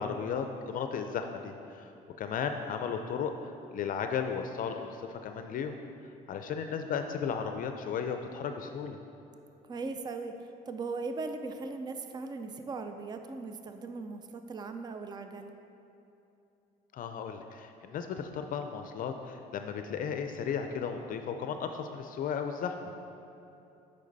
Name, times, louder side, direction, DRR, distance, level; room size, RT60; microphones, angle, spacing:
voice 1, 0.0-1.9 2.2-5.8 6.3-9.0 16.9-22.9, left 6 dB, 55° left, 6 dB, 0.5 m, -35 dB
voice 2, 9.7-10.3 10.7-15.5, right 3 dB, 25° right, 7 dB, 0.4 m, -38 dB
8.3 x 5.5 x 4.0 m, 2.9 s
cardioid pair, 110°, 17 cm